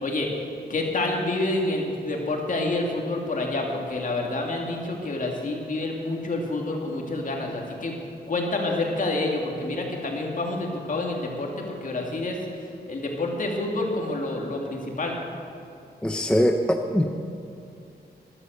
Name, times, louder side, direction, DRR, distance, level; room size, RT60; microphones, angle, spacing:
voice 1, 0.7-8.0 8.3-12.4 12.9-15.2, left 2 dB, 50° left, 0 dB, 2.4 m, -28 dB
voice 2, 16.0-16.6 16.9-17.1, left 1 dB, 5° left, 4 dB, 0.7 m, -21 dB
13.0 x 12.0 x 6.8 m, 2.6 s
wide cardioid pair, 125°, 17 cm